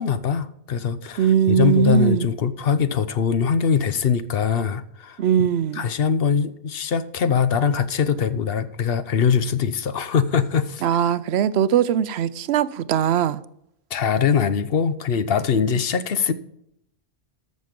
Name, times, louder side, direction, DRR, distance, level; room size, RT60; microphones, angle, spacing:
voice 1, 0.0-5.2 5.7-10.8 13.9-16.3, left 7 dB, 65° left, 0.9 m, -22 dB
voice 2, 1.2-2.3 5.2-5.9 10.8-13.4, right 9 dB, 75° right, 0.8 m, -20 dB
13.0 x 6.4 x 5.1 m
omnidirectional pair, 1.1 m